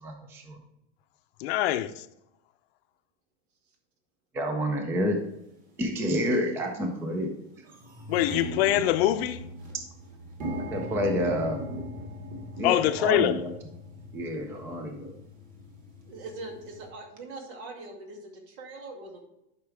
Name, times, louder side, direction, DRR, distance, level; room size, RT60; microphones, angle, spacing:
voice 1, 0.0-0.6 4.3-5.2 5.8-7.3 10.7-11.6 12.6-13.5 14.1-15.1, equal, 5° right, 0.4 m, -29 dB
voice 2, 1.4-1.9 8.1-9.4 12.6-13.4, left 13 dB, 65° left, 0.6 m, -24 dB
sound 1, 5.3-5.4 6.2-6.4 6.8-6.9 7.2-16.9, equal, 25° right, 2.0 m, -39 dB
voice 3, 16.1-19.2, right 2 dB, 75° right, 2.5 m, -42 dB
11.5 x 5.8 x 3.3 m
supercardioid pair, 175°, 33 cm